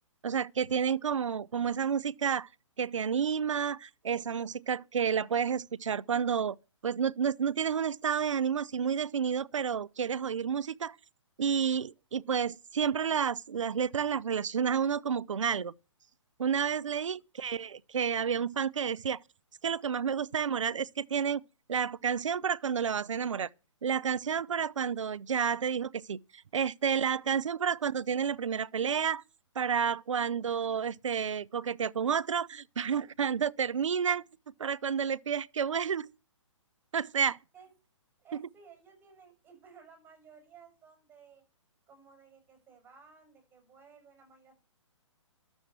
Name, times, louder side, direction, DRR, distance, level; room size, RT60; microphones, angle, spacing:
voice 1, 0.2-2.5 2.8-6.5 6.8-11.0 11.4-15.7 16.4-19.2 19.6-21.4 21.7-23.5 23.8-29.2 29.6-34.2 34.6-36.1 36.9-37.4, right 7 dB, 70° right, 0.7 m, -30 dB
voice 2, 38.2-41.4 41.9-44.5, right 6 dB, 10° right, 6.9 m, -56 dB
12.5 x 7.2 x 8.1 m
figure-of-eight pair, 130°, 16 cm